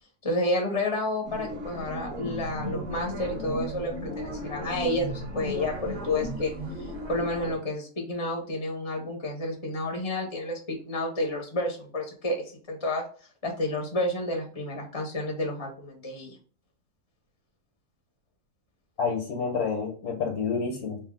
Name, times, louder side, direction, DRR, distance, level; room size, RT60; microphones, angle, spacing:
voice 1, 0.2-6.5 6.8-13.0 13.4-16.4, left 1 dB, 25° left, 1 dB, 0.9 m, -30 dB
sound 1, 1.3-7.6, equal, 35° right, 1.4 m, -36 dB
voice 2, 19.0-21.0, left 5 dB, 70° left, 2 dB, 1.4 m, -29 dB
3.4 x 2.6 x 3.7 m, 0.41 s
omnidirectional pair, 1.6 m